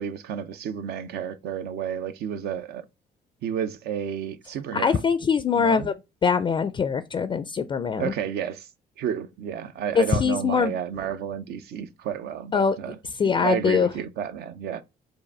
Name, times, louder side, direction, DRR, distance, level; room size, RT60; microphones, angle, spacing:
voice 1, 0.0-2.8 3.4-5.0 5.5-5.9 8.0-8.7 9.0-14.8, right 8 dB, 70° right, 0.6 m, -31 dB
voice 2, 4.7-5.9 6.2-8.1 10.0-10.7 12.5-12.8 13.2-13.9, left 6 dB, 30° left, 0.4 m, -22 dB
4.7 x 2.6 x 4.2 m
cardioid pair, 90°, 17 cm